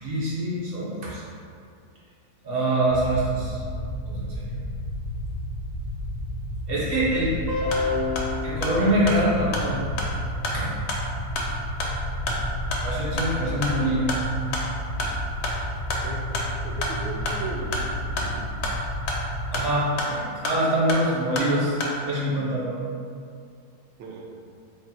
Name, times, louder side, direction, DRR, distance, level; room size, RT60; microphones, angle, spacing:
voice 1, 0.0-1.2 2.4-3.6 4.1-4.5 6.7-9.8 10.5-10.7 12.8-14.1 19.5-22.8, right 1 dB, 55° right, -7 dB, 0.6 m, -25 dB
sound 1, 2.9-19.6, equal, 60° left, 0.7 m, -32 dB
sound 2, 7.7-22.0, left 1 dB, 80° left, 1.2 m, -32 dB
voice 2, 16.6-18.4 24.0-24.3, right 3 dB, 80° right, -1 dB, 1.2 m, -37 dB
3.8 x 2.1 x 4.1 m, 2.3 s
omnidirectional pair, 1.9 m